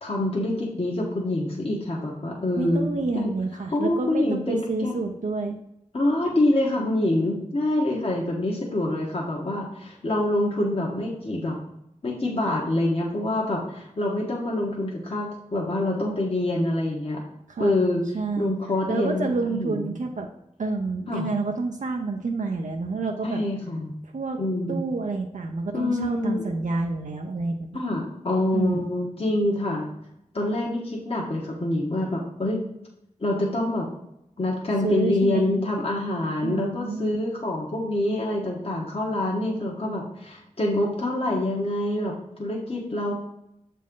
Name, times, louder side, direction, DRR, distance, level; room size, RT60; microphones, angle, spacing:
voice 1, 0.0-3.3 3.7-5.0 5.9-11.6 12.0-17.2 17.6-18.0 18.3-19.8 21.1-21.3 23.2-23.9 24.4-24.8 25.7-26.5 27.7-29.9 30.3-32.6 33.2-33.9 34.4-42.1 42.4-43.1, left 1 dB, 50° left, -3 dB, 1.2 m, -26 dB
voice 2, 2.6-5.6 17.5-17.8 18.1-18.5 18.9-20.3 20.6-23.4 24.0-24.4 24.7-27.8 28.5-28.9 34.8-35.5 36.4-37.2, right 3 dB, 80° right, 2 dB, 0.6 m, -28 dB
7.2 x 4.2 x 3.8 m, 0.82 s
wide cardioid pair, 80°, 13 cm